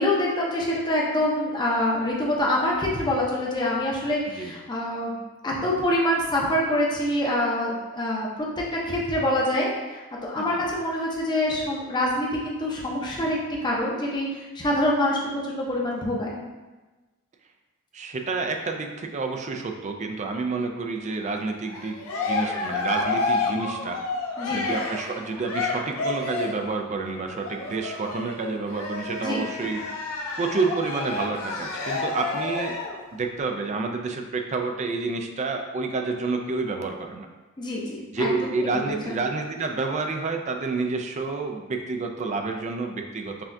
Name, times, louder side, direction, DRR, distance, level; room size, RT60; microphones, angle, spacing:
voice 1, 0.0-8.3 8.8-15.2 15.4-16.4 24.4-24.6 29.2-29.4 37.6-39.1, left 1 dB, 20° left, -3 dB, 0.6 m, -26 dB
voice 2, 17.9-22.0 22.3-24.0 24.5-29.8 30.4-32.7 33.1-37.3 38.1-43.4, right 3 dB, 35° right, 4 dB, 0.3 m, -29 dB
Cheering, 21.7-26.7 27.4-33.0, left 3 dB, 70° left, 0.6 m, -30 dB
5.7 x 2.3 x 2.6 m, 1.2 s
head